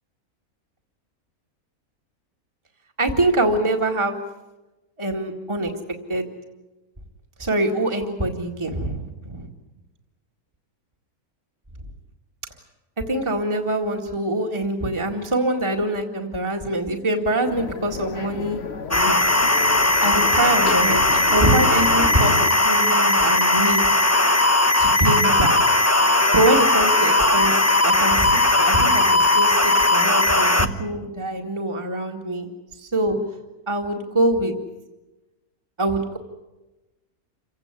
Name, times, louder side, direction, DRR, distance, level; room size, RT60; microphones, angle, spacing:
voice 1, 3.0-4.2 5.0-5.7 6.1-6.3 7.4-9.5 13.1-18.6 18.9-19.2 20.0-21.0 21.3-23.9 24.8-25.6 26.1-27.5 27.8-33.2 33.7-34.5 35.8-36.2, right 1 dB, 20° right, 1 dB, 2.1 m, -24 dB
sound 1, 17.4-22.5, left 6 dB, 50° left, 1.2 m, -32 dB
sound 2, 18.9-30.7, left 2 dB, 15° left, 0.9 m, -18 dB
28.0 x 16.5 x 9.9 m, 1.1 s
omnidirectional pair, 1.5 m